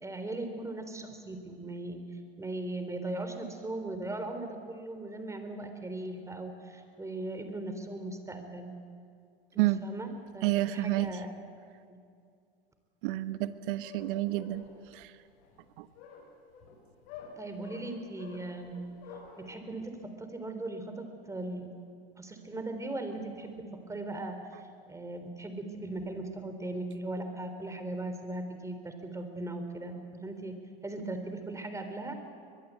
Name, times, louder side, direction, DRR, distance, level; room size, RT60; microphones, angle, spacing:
voice 1, 0.0-2.0 2.4-8.7 9.5-11.3 11.9-12.0 17.4-18.8 19.4-21.7 22.2-24.4 24.9-30.6 30.8-32.1, right 2 dB, 10° right, 7 dB, 3.7 m, -38 dB
voice 2, 10.4-11.1 13.0-14.6 14.9-15.1 15.8-15.9, right 16 dB, 60° right, 12 dB, 1.4 m, -29 dB
sound 1, 13.5-19.5, left 6 dB, 60° left, 7.6 m, -50 dB
23.0 x 21.5 x 8.4 m, 2.3 s
hypercardioid pair, 100°, 30 cm